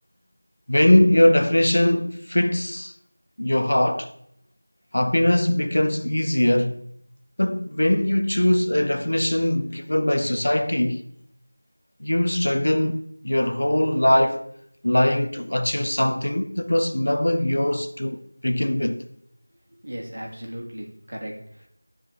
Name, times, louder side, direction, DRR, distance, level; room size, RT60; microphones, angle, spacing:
voice 1, 0.7-2.9 3.4-4.1 4.9-6.8 7.4-11.0 12.0-14.5 14.8-19.0, left 1 dB, 60° left, 0.7 m, -21 dB
voice 2, 19.8-21.7, equal, 60° right, 2.2 m, -36 dB
13.5 x 4.8 x 3.3 m
figure-of-eight pair, 175°, 0 cm